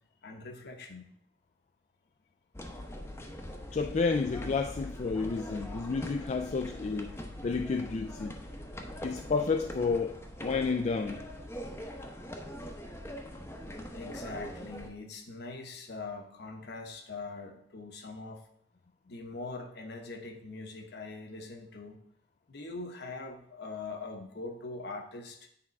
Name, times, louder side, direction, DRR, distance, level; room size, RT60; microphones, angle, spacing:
voice 1, 0.2-1.1 13.9-18.4 19.1-22.0 22.5-25.4, left 3 dB, 65° left, 4 dB, 1.1 m, -42 dB
sound 1, 2.5-14.9, equal, 15° left, 0.8 m, -42 dB
voice 2, 3.7-8.3 9.0-11.2, left 4 dB, 40° left, 5 dB, 0.4 m, -31 dB
8.7 x 3.7 x 5.3 m, 0.71 s
head